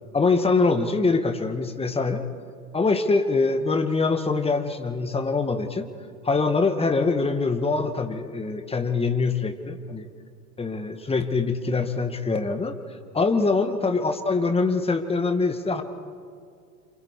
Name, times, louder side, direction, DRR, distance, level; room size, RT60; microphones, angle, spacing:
voice 1, 0.1-2.3 2.7-5.9 6.2-10.1 10.6-12.8 13.1-15.8, left 3 dB, 10° left, 7 dB, 2.0 m, -24 dB
28.0 x 27.5 x 4.9 m, 2.3 s
hypercardioid pair, 90°, 45 cm